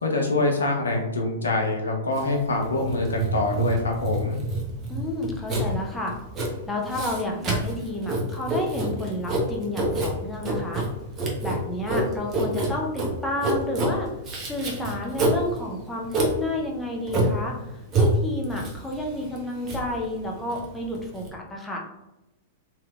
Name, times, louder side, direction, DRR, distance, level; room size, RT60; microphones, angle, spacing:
voice 1, 0.0-4.4, left 2 dB, 80° left, 1 dB, 0.7 m, -25 dB
Writing, 2.1-21.3, right 1 dB, 30° right, 0.9 m, -27 dB
voice 2, 4.9-6.2 6.7-10.9 11.4-14.1 14.5-21.8, left 1 dB, 5° left, -1 dB, 0.7 m, -31 dB
3.4 x 3.0 x 2.4 m, 0.97 s
figure-of-eight pair, 105°, 0 cm